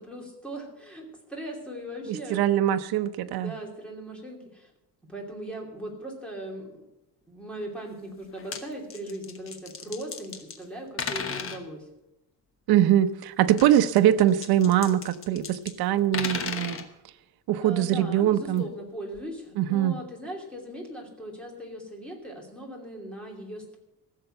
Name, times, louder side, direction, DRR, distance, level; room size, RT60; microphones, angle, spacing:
voice 1, 0.0-2.8 3.2-4.7 5.1-6.8 7.3-11.8 17.6-23.8, right 1 dB, 5° left, 0 dB, 2.8 m, -39 dB
voice 2, 2.3-3.5 12.7-16.8 17.5-18.6 19.6-19.9, right 11 dB, 70° right, 9 dB, 0.8 m, -22 dB
sound 1, 8.2-8.6 8.9-10.6 11.0-11.6 13.5-15.7 16.0-16.8 18.6-18.7 19.1-19.2, left 6 dB, 35° left, 1.2 m, -35 dB
16.0 x 6.8 x 7.9 m, 0.92 s
cardioid pair, 165°, 38 cm